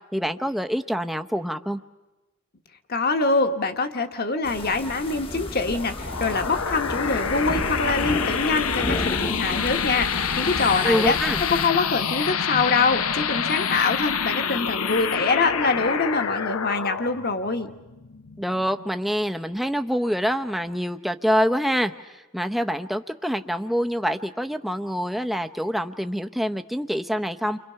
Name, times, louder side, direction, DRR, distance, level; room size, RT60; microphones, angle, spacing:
voice 1, 0.1-1.8 10.8-11.4 18.4-27.6, equal, ahead, 7 dB, 0.8 m, -26 dB
voice 2, 2.9-17.7, left 3 dB, 45° left, 7 dB, 1.5 m, -24 dB
sound 1, 4.4-11.7, left 1 dB, 25° left, 1.2 m, -33 dB
sound 2, 5.7-18.9, left 6 dB, 70° left, 0.9 m, -27 dB
29.5 x 25.5 x 5.8 m, 1.1 s
head